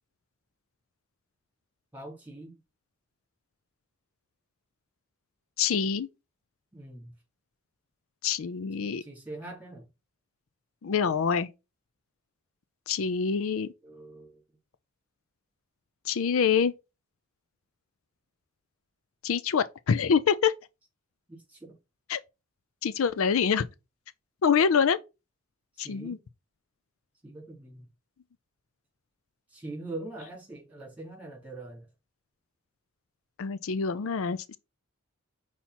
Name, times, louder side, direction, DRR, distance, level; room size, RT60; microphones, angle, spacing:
voice 1, 1.9-2.6 6.7-7.1 8.8-9.9 13.8-14.4 21.3-21.8 25.8-26.2 27.2-27.9 29.5-31.9, right 2 dB, 5° right, 3.5 m, -43 dB
voice 2, 5.6-6.1 8.2-9.0 10.8-11.5 12.9-13.7 16.1-16.7 19.2-20.5 22.1-22.2 22.8-23.7 24.4-25.0 25.8-26.2 33.4-34.6, left 6 dB, 70° left, 0.4 m, -25 dB
5.7 x 4.3 x 4.2 m
head